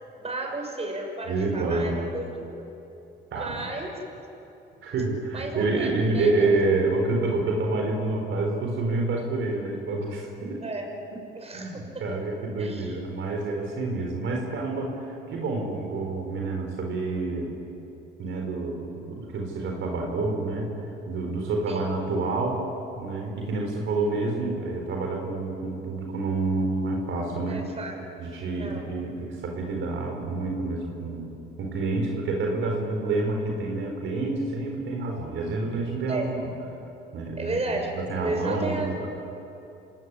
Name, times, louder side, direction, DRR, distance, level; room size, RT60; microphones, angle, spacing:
voice 1, 0.2-2.6 3.3-4.0 5.3-6.6 10.6-10.9 11.3-11.8 12.6-13.0 21.7-21.8 27.4-28.0 28.6-28.9 36.1-36.3 37.4-39.1, right 2 dB, 30° right, 2 dB, 6.0 m, -33 dB
voice 2, 1.3-2.1 3.3-3.6 4.8-10.6 11.5-17.6 18.2-22.6 23.0-27.6 28.2-36.4 37.1-37.6 38.0-39.1, right 3 dB, 75° right, 1 dB, 4.4 m, -28 dB
27.0 x 18.5 x 9.9 m, 2.9 s
cardioid pair, 90°, 20 cm